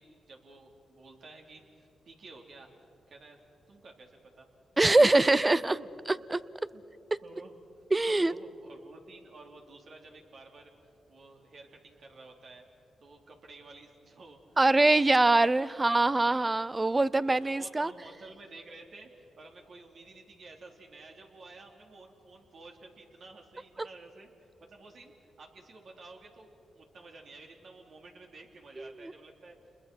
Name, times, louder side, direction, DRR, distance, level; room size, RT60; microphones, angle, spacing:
voice 1, 0.0-2.7 3.1-3.4 3.7-4.5 5.0-5.1 5.5-6.3 6.7-6.8 7.2-7.5 8.1-10.7 11.1-12.6 13.0-14.4 14.7-16.4 17.3-26.5 26.7-29.6, right 3 dB, 65° right, 1 dB, 3.4 m, -52 dB
voice 2, 4.8-5.8 6.1-6.4 7.9-8.3 14.6-17.9 28.8-29.1, right 2 dB, 25° right, 18 dB, 0.6 m, -24 dB
28.0 x 21.5 x 6.3 m, 2.7 s
supercardioid pair, 55°, 0 cm